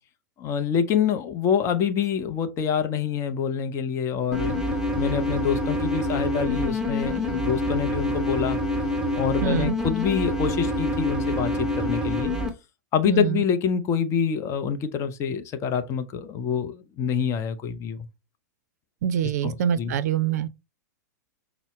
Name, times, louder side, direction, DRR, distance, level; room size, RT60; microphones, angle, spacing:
voice 1, 0.4-4.6 5.0-8.6 9.2-12.3 12.9-18.0 19.4-19.9, left 7 dB, 30° left, 0.5 m, -26 dB
sound 1, 4.3-12.5, left 1 dB, 5° right, 1.0 m, -26 dB
voice 2, 9.4-9.7 13.0-13.4 19.0-20.5, right 9 dB, 60° right, 0.5 m, -25 dB
5.4 x 2.0 x 3.0 m
hypercardioid pair, 105°, 10 cm